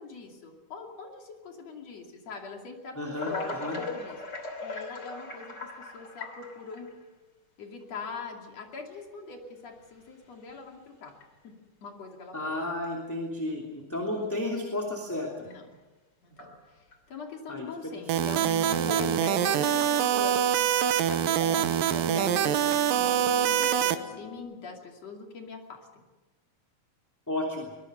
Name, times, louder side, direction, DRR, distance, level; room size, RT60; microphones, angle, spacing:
voice 1, 0.0-4.2 4.6-6.9 7.6-11.1 11.8-12.5 14.3-14.4 15.4-15.8 16.2-20.5 21.0-26.0, left 4 dB, 50° left, 2 dB, 3.7 m, -42 dB
voice 2, 2.9-3.8 12.3-15.5 17.5-18.2 27.3-27.7, left 1 dB, 5° left, -1 dB, 2.5 m, -33 dB
sound 1, 3.2-7.0 7.8-7.9 8.9-9.0 9.8-10.1 10.5-10.6 11.1-11.2 12.6-12.7 15.5-15.6 16.3-17.0 18.3-18.4 18.8-19.4 19.8-19.9 21.2-21.9 22.6-23.0, left 2 dB, 35° left, 3.3 m, -40 dB
sound 2, 18.1-24.0, right 10 dB, 90° right, 2.7 m, -25 dB
sound 3, 18.3-24.4, left 4 dB, 85° left, 8.4 m, -43 dB
22.5 x 20.5 x 6.7 m, 1.2 s
omnidirectional pair, 3.9 m